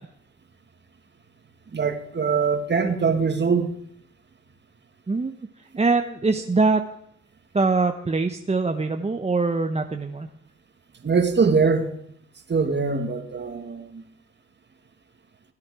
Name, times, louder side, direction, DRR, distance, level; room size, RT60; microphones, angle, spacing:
voice 1, 1.7-3.7 11.0-11.9 12.5-14.0, right 5 dB, 40° right, 7 dB, 2.0 m, -22 dB
voice 2, 5.8-6.8 7.5-10.3, right 3 dB, 20° right, 6 dB, 0.9 m, -23 dB
16.0 x 9.7 x 4.9 m, 0.71 s
supercardioid pair, 65°, 29 cm